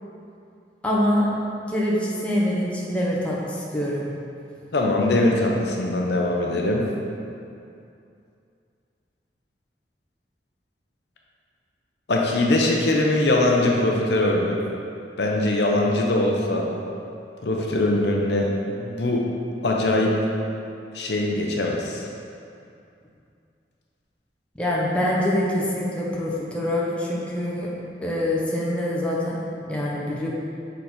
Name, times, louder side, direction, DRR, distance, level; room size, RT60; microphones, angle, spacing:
voice 1, 0.8-1.3 1.7-4.1 24.6-27.7 28.0-30.3, left 1 dB, 5° left, -5 dB, 0.8 m, -25 dB
voice 2, 4.7-6.9 12.1-14.6 15.2-16.7 17.4-19.3 19.6-20.2 20.9-22.1, left 1 dB, 70° left, -1 dB, 0.7 m, -22 dB
6.6 x 4.0 x 4.3 m, 2.6 s
head